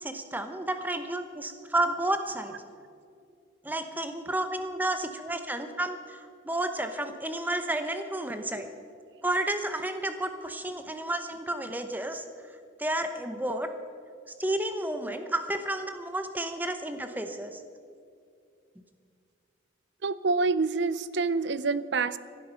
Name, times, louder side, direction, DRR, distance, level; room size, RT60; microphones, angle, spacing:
voice 1, 0.0-2.5 3.6-8.7 9.2-12.2 12.8-13.7 14.4-17.6, right 1 dB, 10° right, 8 dB, 0.8 m, -31 dB
voice 2, 20.0-22.2, right 4 dB, 60° right, 16 dB, 0.5 m, -27 dB
17.5 x 12.0 x 5.7 m, 2.4 s
head